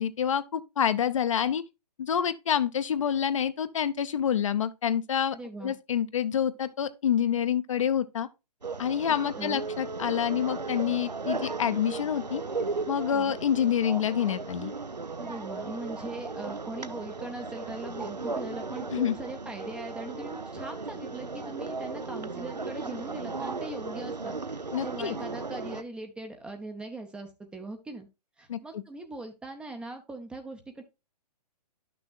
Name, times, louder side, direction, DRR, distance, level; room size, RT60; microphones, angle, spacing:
voice 1, 0.0-1.6 2.0-5.4 5.6-8.3 8.8-12.4 12.9-14.7 18.9-19.2 24.7-25.1 28.5-28.6, left 9 dB, 50° left, 0.7 m, -27 dB
voice 2, 5.3-5.7 9.1-9.7 13.1-13.4 15.2-24.3 24.8-28.1 28.4-30.8, right 2 dB, 5° right, 0.6 m, -40 dB
sound 1, 8.6-25.8, right 3 dB, 90° right, 0.6 m, -36 dB
11.5 x 6.2 x 2.4 m
figure-of-eight pair, 125°, 21 cm